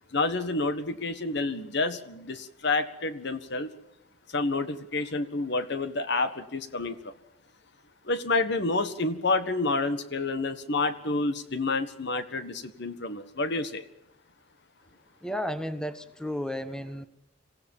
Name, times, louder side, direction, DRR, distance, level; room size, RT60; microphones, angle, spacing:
voice 1, 0.1-3.7 4.3-7.0 8.1-13.8, left 3 dB, 60° left, 11 dB, 1.6 m, -29 dB
voice 2, 15.2-17.1, equal, 5° left, 11 dB, 1.0 m, -33 dB
26.5 x 16.0 x 7.3 m, 0.82 s
head